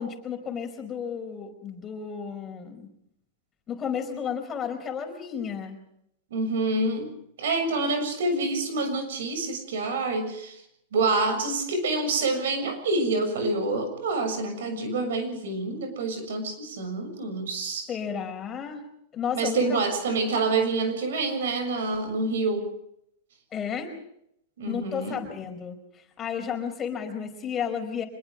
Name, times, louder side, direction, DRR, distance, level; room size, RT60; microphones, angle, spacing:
voice 1, 0.0-2.9 3.7-5.8 17.9-18.8 19.1-19.8 23.5-23.9 24.7-25.8 26.2-28.0, left 7 dB, 20° left, 4 dB, 4.8 m, -32 dB
voice 2, 6.3-7.1 7.4-10.6 10.9-17.9 19.3-22.7 24.6-25.2, right 3 dB, 80° right, 7 dB, 6.9 m, -27 dB
25.5 x 21.5 x 5.0 m, 0.75 s
supercardioid pair, 145°, 0 cm